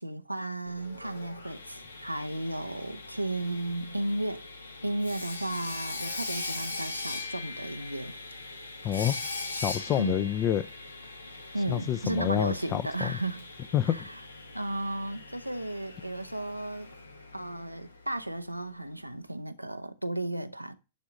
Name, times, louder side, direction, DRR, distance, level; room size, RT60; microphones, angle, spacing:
voice 1, 0.0-4.5 4.8-8.1 10.0-10.3 11.5-13.5 13.8-14.2 14.5-16.9 17.3-20.8, right 1 dB, 90° right, 0.6 m, -34 dB
Sawing, 0.6-18.5, left 3 dB, 75° left, 1.2 m, -41 dB
voice 2, 8.8-9.2 9.6-10.6 11.7-13.1 13.7-14.1, left 11 dB, 30° left, 0.6 m, -28 dB
11.0 x 3.8 x 5.1 m
figure-of-eight pair, 105°, 0 cm